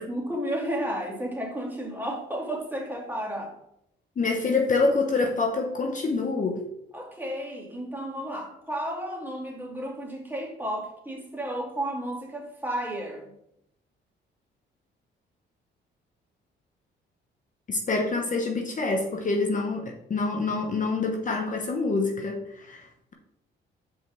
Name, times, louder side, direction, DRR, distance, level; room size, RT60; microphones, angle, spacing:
voice 1, 0.0-3.6 6.9-13.3, right 1 dB, 10° right, -2 dB, 2.5 m, -32 dB
voice 2, 4.2-6.6 17.7-22.8, left 3 dB, 40° left, 2 dB, 1.1 m, -26 dB
5.1 x 4.8 x 6.1 m, 0.78 s
cardioid pair, 90°, 20 cm